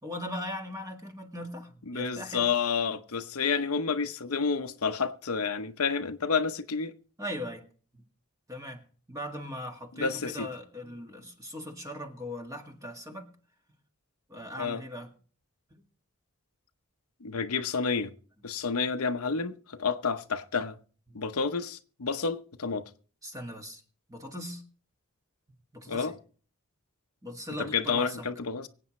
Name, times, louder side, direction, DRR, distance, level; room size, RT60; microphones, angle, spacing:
voice 1, 0.0-2.5 7.2-7.6 7.9-8.0 8.5-13.3 14.3-15.1 15.7-15.8 21.1-21.2 23.2-23.8 24.1-24.6 25.7-26.2 27.2-28.3, left 1 dB, 15° right, 1.7 m, -39 dB
voice 2, 1.9-6.9 10.0-10.5 14.6-14.8 17.2-18.1 18.4-20.8 21.1-22.9 25.9-26.2 27.6-28.7, left 5 dB, 85° left, 0.8 m, -30 dB
24.5 x 8.6 x 3.1 m
head